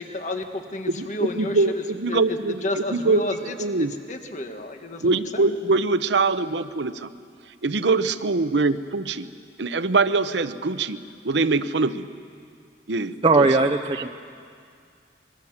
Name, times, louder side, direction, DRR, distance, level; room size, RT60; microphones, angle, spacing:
voice 1, 0.0-5.5, left 2 dB, 45° left, 5 dB, 1.7 m, -31 dB
voice 2, 0.9-3.2 3.6-3.9 5.0-7.1 7.6-9.3 9.6-11.0 11.2-12.1 12.9-13.5, right 3 dB, 80° right, 12 dB, 0.9 m, -23 dB
voice 3, 13.2-14.1, right 3 dB, 30° right, 4 dB, 0.8 m, -18 dB
26.5 x 22.5 x 7.3 m, 2.3 s
head